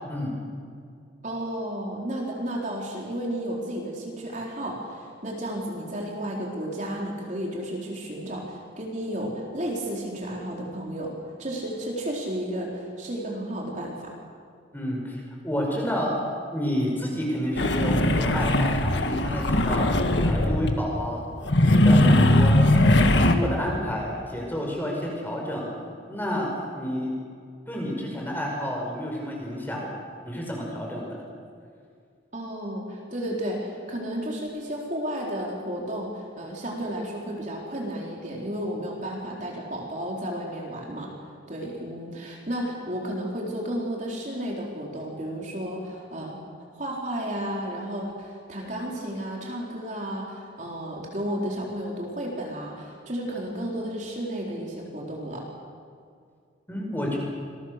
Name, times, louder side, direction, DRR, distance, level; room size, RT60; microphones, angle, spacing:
voice 1, 1.2-11.1 11.4-14.1 32.3-41.1 41.5-46.4 46.7-55.4, right 1 dB, 40° right, -2 dB, 4.0 m, -32 dB
voice 2, 14.7-16.1 16.5-19.9 20.2-21.2 21.6-22.7 23.0-25.7 26.0-26.5 26.8-27.1 27.7-29.9 30.2-31.2 56.7-57.2, equal, 10° left, -1 dB, 5.7 m, -30 dB
sound 1, 17.6-20.8 21.5-23.3, left 1 dB, 70° left, 1.8 m, -20 dB
27.0 x 21.5 x 6.7 m, 2.2 s
head